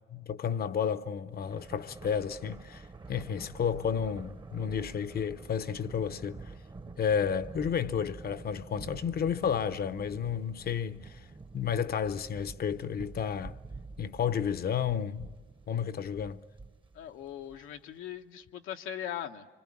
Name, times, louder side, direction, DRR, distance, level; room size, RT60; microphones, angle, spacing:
voice 1, 0.1-6.4 7.0-11.2 11.5-13.6 14.0-15.3 15.7-16.4, left 7 dB, 50° left, 0.8 m, -31 dB
Thunder, 1.3-17.9, right 3 dB, 25° right, 1.0 m, -48 dB
voice 2, 16.9-19.5, left 10 dB, 90° left, 1.1 m, -40 dB
26.0 x 25.5 x 8.6 m
cardioid pair, 90°, 20 cm